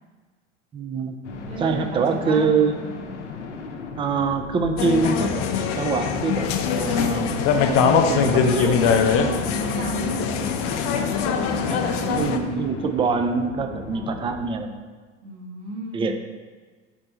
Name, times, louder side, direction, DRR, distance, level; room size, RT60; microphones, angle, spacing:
voice 1, 0.7-1.2 1.6-2.8 4.0-5.5 5.8-7.4 7.7-9.6 11.3-14.8 15.9-16.2, right 5 dB, 15° right, 7 dB, 0.4 m, -25 dB
sound 1, 1.2-14.5, left 3 dB, 70° left, 0.7 m, -37 dB
voice 2, 1.5-2.5 9.6-12.3 13.9-14.1 15.2-16.2, right 2 dB, 60° right, -1 dB, 1.3 m, -36 dB
sound 2, 4.8-12.4, left 6 dB, 40° left, 0.6 m, -22 dB
5.3 x 4.3 x 4.2 m, 1.4 s
figure-of-eight pair, 70°, 37 cm